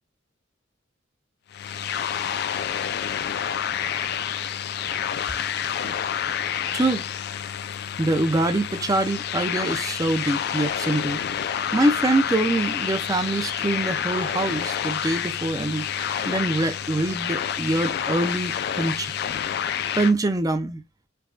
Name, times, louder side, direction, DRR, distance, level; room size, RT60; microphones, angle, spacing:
sound 1, 1.5-20.1, left 9 dB, 55° left, 0.3 m, -28 dB
voice 1, 6.7-7.0 8.0-11.2 11.7-19.2 20.0-20.8, right 2 dB, 20° right, 0.5 m, -24 dB
4.6 x 2.2 x 2.5 m
head